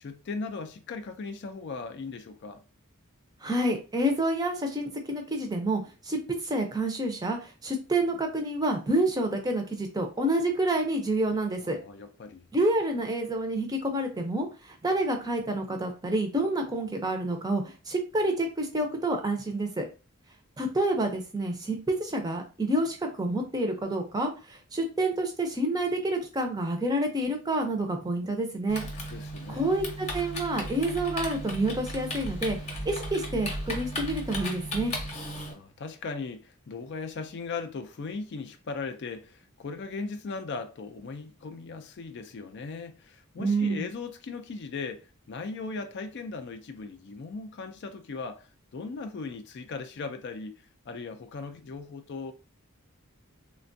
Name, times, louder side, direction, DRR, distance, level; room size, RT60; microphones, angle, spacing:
voice 1, 0.0-2.6 11.6-12.5 28.7-28.8 29.1-30.0 35.5-52.3, left 4 dB, 55° left, 0.4 m, -38 dB
voice 2, 3.4-6.2 6.4-11.8 12.5-19.9 20.6-28.8 29.5-32.6 32.9-34.9 43.4-43.9, right 1 dB, 20° right, 0.5 m, -28 dB
Typing, 28.7-35.5, equal, 30° left, 0.8 m, -36 dB
3.3 x 2.2 x 2.6 m
head